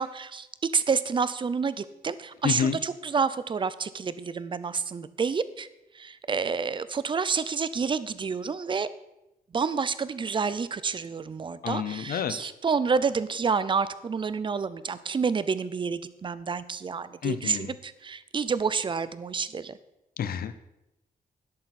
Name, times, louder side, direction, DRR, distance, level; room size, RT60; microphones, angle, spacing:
voice 1, 0.0-5.7 5.9-8.9 9.5-19.8, right 5 dB, 35° right, 15 dB, 0.6 m, -29 dB
voice 2, 2.4-2.8 11.6-12.5 17.2-17.7 20.2-20.5, left 8 dB, 85° left, 12 dB, 0.8 m, -29 dB
12.5 x 10.5 x 4.3 m, 0.90 s
wide cardioid pair, 145°, 15 cm